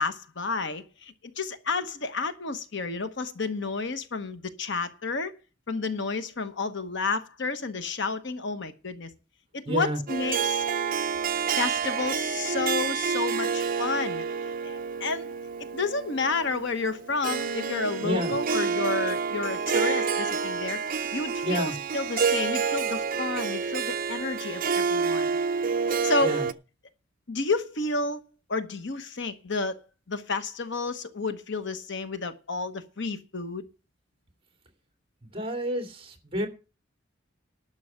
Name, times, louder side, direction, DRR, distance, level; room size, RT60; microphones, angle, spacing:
voice 1, 0.0-5.3 5.7-9.1 9.5-10.6 11.3-14.2 14.6-15.3 15.6-25.4 26.0-26.3 27.3-28.2 28.5-29.8 30.1-33.6, left 4 dB, 65° left, 1.1 m, -31 dB
voice 2, 9.7-10.0 18.0-18.4 21.4-21.8 26.2-26.5 35.3-36.5, equal, 30° right, 2.7 m, -29 dB
Harp, 10.1-26.5, right 6 dB, 45° right, 0.6 m, -28 dB
11.5 x 6.3 x 7.6 m
head